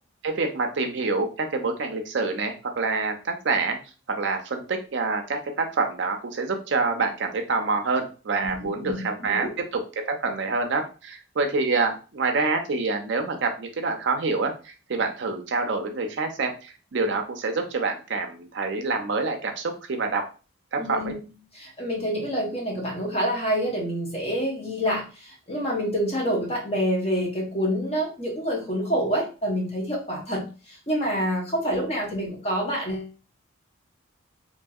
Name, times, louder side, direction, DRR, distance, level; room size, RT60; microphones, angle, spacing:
voice 1, 0.2-3.8 4.2-20.2 20.7-21.1, right 3 dB, 60° right, 4 dB, 0.5 m, -27 dB
voice 2, 8.4-8.9 9.2-9.5 20.8-21.2 21.5-33.2, equal, 30° left, -2 dB, 0.8 m, -27 dB
2.7 x 2.7 x 2.3 m, 0.34 s
head